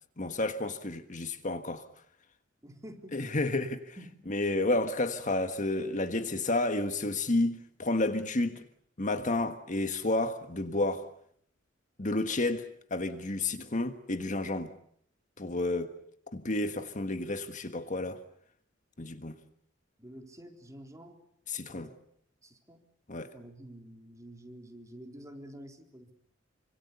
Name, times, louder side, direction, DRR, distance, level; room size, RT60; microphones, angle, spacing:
voice 1, 0.2-1.9 3.1-4.0 4.3-8.6 9.0-11.1 12.0-14.7 15.4-15.9 16.3-18.2 19.0-19.4 21.5-21.9 23.1-23.3, left 2 dB, 40° left, 1.5 m, -31 dB
voice 2, 2.6-3.4 4.0-4.2 20.0-21.2 21.7-22.0 22.4-22.8 23.3-26.1, right 1 dB, 15° right, 3.9 m, -49 dB
27.5 x 26.0 x 6.9 m
head